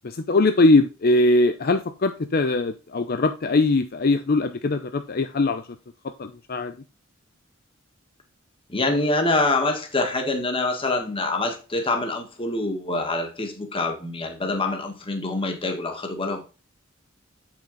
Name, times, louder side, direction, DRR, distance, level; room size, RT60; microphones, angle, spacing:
voice 1, 0.0-5.6 6.0-6.7, left 2 dB, 50° left, 8 dB, 0.6 m, -21 dB
voice 2, 8.7-16.4, left 2 dB, 25° left, 4 dB, 1.5 m, -25 dB
8.6 x 6.0 x 3.8 m, 0.31 s
head